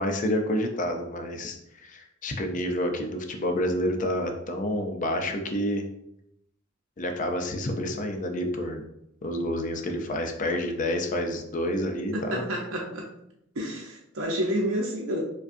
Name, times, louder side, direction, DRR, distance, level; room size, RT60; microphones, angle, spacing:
voice 1, 0.0-5.8 7.0-8.8 9.2-12.4, left 1 dB, 40° left, 5 dB, 0.5 m, -29 dB
voice 2, 12.1-13.1 13.5-15.2, equal, 85° right, -2 dB, 0.7 m, -29 dB
4.8 x 2.3 x 2.6 m, 0.80 s
head